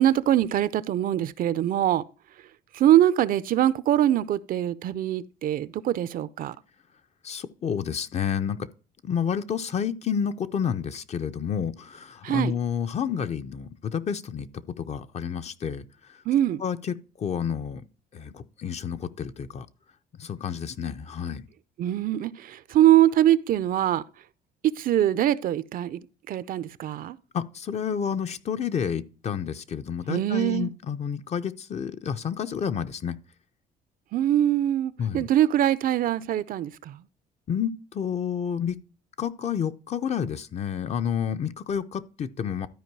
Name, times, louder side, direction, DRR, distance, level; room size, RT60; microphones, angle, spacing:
voice 1, 0.0-2.0 2.7-6.6 12.2-12.5 16.3-16.6 21.8-24.0 24.6-27.2 30.1-30.7 34.1-37.0, right 12 dB, 55° right, 0.5 m, -23 dB
voice 2, 7.2-8.7 9.0-15.8 16.6-17.8 18.1-19.7 20.2-21.5 27.3-33.2 35.0-35.3 37.5-38.8 39.2-42.7, left 7 dB, 40° left, 0.7 m, -30 dB
12.5 x 4.8 x 4.6 m
cardioid pair, 110°, 17 cm